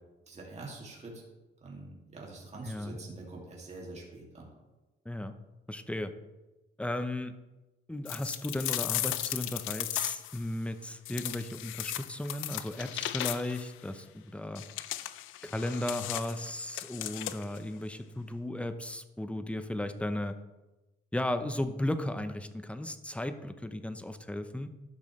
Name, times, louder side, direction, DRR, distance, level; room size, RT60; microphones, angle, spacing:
voice 1, 0.3-1.2 1.6-4.5, right 2 dB, 35° right, -3 dB, 2.4 m, -45 dB
voice 2, 2.6-3.0 5.0-5.4 5.7-6.1 6.8-7.3 7.9-14.6 15.4-20.4 21.1-24.7, left 1 dB, 5° left, 9 dB, 0.7 m, -35 dB
sound 1, 8.1-10.4 11.1-13.7 14.6-17.6, left 14 dB, 85° left, 0.4 m, -36 dB
12.0 x 6.1 x 3.2 m, 1.1 s
cardioid pair, 90°, 20 cm